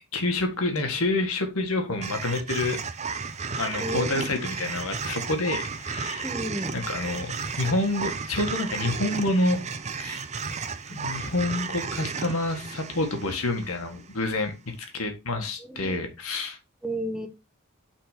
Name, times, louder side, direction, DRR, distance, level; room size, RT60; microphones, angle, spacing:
voice 1, 0.1-2.8 3.6-6.3 6.7-9.6 9.9-10.2 10.9-16.6, left 2 dB, 80° left, 1.7 m, -28 dB
sound 1, 2.0-14.3, right 5 dB, 30° right, 0.6 m, -34 dB
voice 2, 3.8-4.4 6.2-6.7 15.6-16.0 16.8-17.3, right 1 dB, 5° right, 1.1 m, -32 dB
5.9 x 4.4 x 5.1 m
head